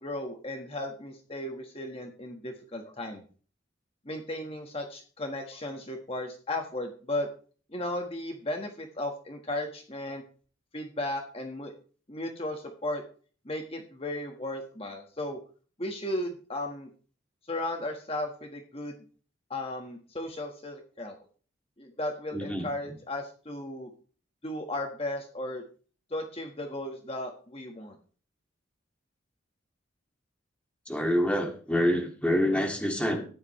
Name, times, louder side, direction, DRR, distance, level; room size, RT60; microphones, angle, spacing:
voice 1, 0.0-3.2 4.0-7.3 7.7-10.2 10.7-11.7 12.1-13.0 13.4-15.4 15.8-16.9 17.5-18.9 19.5-21.2 21.8-23.9 24.4-25.6 26.1-28.0, left 1 dB, 30° left, 3 dB, 1.6 m, -35 dB
voice 2, 22.3-22.7 30.9-33.3, equal, 5° left, 2 dB, 2.1 m, -26 dB
14.5 x 11.0 x 3.2 m, 0.40 s
head